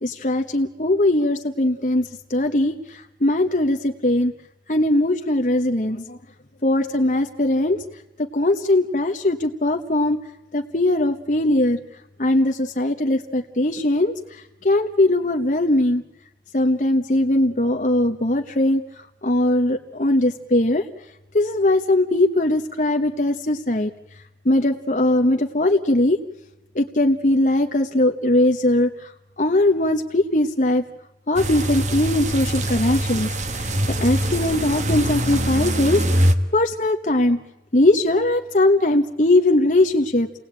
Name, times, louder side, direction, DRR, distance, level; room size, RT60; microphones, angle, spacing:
voice 1, 0.0-4.3 4.7-6.2 6.6-7.8 8.3-10.2 10.5-11.8 12.2-16.0 16.5-18.8 19.2-20.8 21.3-23.9 24.4-26.2 26.7-29.1 29.4-30.8 31.3-33.7 34.0-37.4 37.7-40.3, left 1 dB, 45° left, 5 dB, 1.1 m, -20 dB
sound 1, 31.4-36.3, right 1 dB, 40° right, 1.5 m, -23 dB
29.5 x 19.0 x 8.9 m, 0.98 s
head